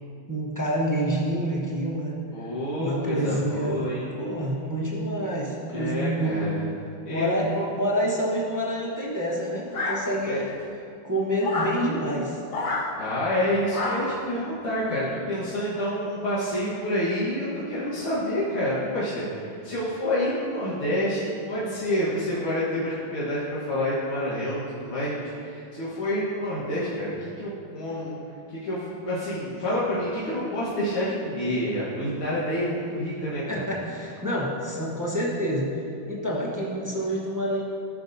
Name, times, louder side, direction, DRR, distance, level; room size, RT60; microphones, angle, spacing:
voice 1, 0.3-2.2 2.8-6.5 7.1-10.4 11.0-12.4 33.5-35.8 36.1-37.6, equal, 15° right, -6 dB, 0.7 m, -27 dB
voice 2, 2.3-4.1 5.7-6.6 7.1-7.6 10.2-10.4 13.0-28.2 28.5-33.6, equal, 85° left, -10 dB, 2.3 m, -28 dB
Friends' Dogs, 9.7-10.5 11.4-11.8 12.5-12.9 13.7-14.2, left 2 dB, 50° left, 1.0 m, -29 dB
15.0 x 5.8 x 2.7 m, 2.5 s
omnidirectional pair, 2.2 m